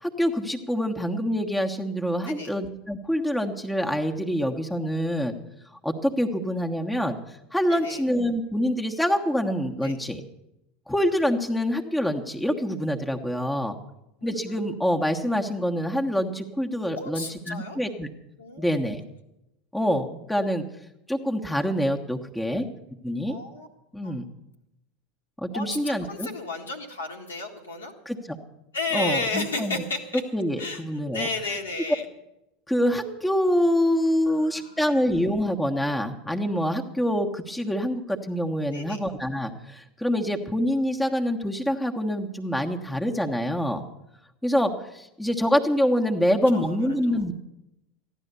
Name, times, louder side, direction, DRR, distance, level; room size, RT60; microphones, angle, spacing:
voice 1, 0.0-5.4 5.8-7.2 7.5-10.2 10.9-13.8 14.2-18.1 18.6-19.0 19.7-20.6 21.1-22.6 23.0-23.3 23.9-24.2 25.4-26.3 28.0-28.4 28.9-29.8 30.3-31.3 32.7-43.8 44.4-47.3, equal, 5° left, 2 dB, 1.3 m, -26 dB
voice 2, 7.7-8.0 9.8-10.0 14.2-14.6 17.0-17.8 18.4-18.7 23.3-23.7 24.0-24.2 25.5-27.9 28.7-30.2 30.6-30.8 31.1-32.0 34.4-34.8 38.7-39.0 46.5-46.8 47.1-47.2, left 3 dB, 80° left, 1 dB, 1.8 m, -33 dB
14.5 x 11.0 x 6.9 m, 0.89 s
figure-of-eight pair, 80°, 0 cm